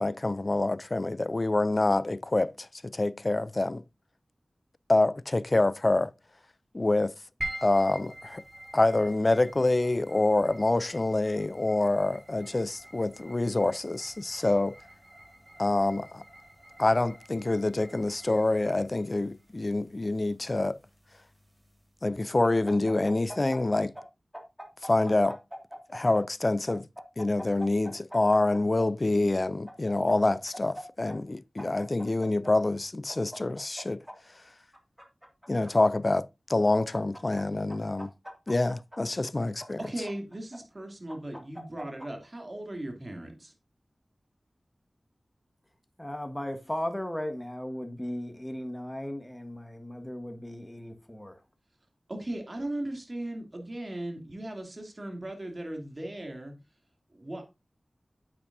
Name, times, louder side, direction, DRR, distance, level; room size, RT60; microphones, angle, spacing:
voice 1, 0.0-3.8 4.9-6.1 6.7-7.1 7.6-8.4 8.7-14.8 15.6-16.2 16.8-20.8 22.0-23.9 24.8-25.4 25.9-26.9 27.2-34.0 35.5-38.1 38.5-39.8, left 2 dB, 45° left, 0.4 m, -26 dB
sound 1, 7.4-21.9, right 1 dB, 25° right, 3.7 m, -46 dB
sound 2, 22.4-24.0 24.3-26.2 26.7-28.8 29.7-30.8 31.1-31.2 31.6-32.5 33.1-34.1 34.7-35.7 36.5-37.4 37.7-39.0 39.6-40.6 41.1-42.1, equal, 5° right, 2.2 m, -42 dB
voice 2, 39.8-43.5 52.1-56.5 57.1-57.5, right 1 dB, 45° right, 2.6 m, -37 dB
voice 3, 46.0-51.4, left 1 dB, 15° left, 1.5 m, -36 dB
8.7 x 8.6 x 2.6 m
cardioid pair, 45°, 0 cm